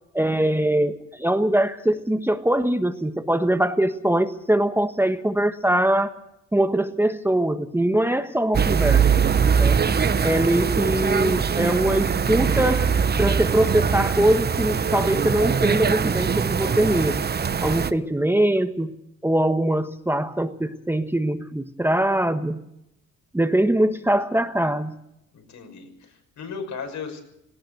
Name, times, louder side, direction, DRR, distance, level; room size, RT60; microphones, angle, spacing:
voice 1, 0.1-6.1 6.5-9.8 10.2-12.9 13.2-17.2 17.6-18.9 19.2-22.6 23.3-25.0, right 1 dB, 5° right, 8 dB, 1.4 m, -22 dB
sound 1, 8.5-17.9, right 6 dB, 35° right, 1.0 m, -22 dB
voice 2, 25.3-27.2, left 5 dB, 70° left, 5 dB, 6.2 m, -36 dB
18.5 x 17.5 x 7.9 m, 0.81 s
cardioid pair, 90°, 30 cm